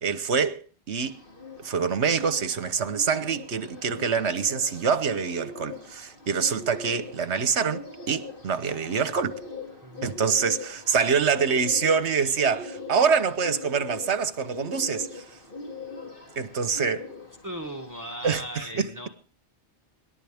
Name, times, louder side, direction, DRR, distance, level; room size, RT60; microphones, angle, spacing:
voice 1, 0.0-1.2 1.6-9.4 10.0-15.2 16.4-17.1 18.2-18.4 18.8-18.9, right 6 dB, 70° right, 1.3 m, -25 dB
Bird, 1.0-18.3, left 3 dB, 45° left, 2.6 m, -41 dB
voice 2, 9.8-10.1 17.4-19.1, equal, 15° right, 2.1 m, -37 dB
26.0 x 11.5 x 3.5 m
omnidirectional pair, 1.2 m